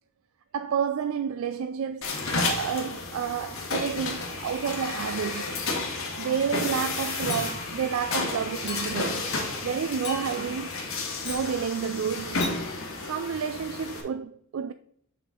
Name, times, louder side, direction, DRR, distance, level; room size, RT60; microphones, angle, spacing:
voice 1, 0.5-5.5 6.2-10.7 11.2-12.4 13.0-14.7, right 7 dB, 80° right, 0.4 m, -30 dB
sound 1, 2.0-14.0, left 3 dB, 85° left, 1.7 m, -32 dB
Chink clink, 7.3-7.8 8.7-9.1 10.0-10.5 11.2-11.5 12.4-12.6, left 3 dB, 55° left, 2.5 m, -37 dB
6.7 x 6.6 x 3.7 m
head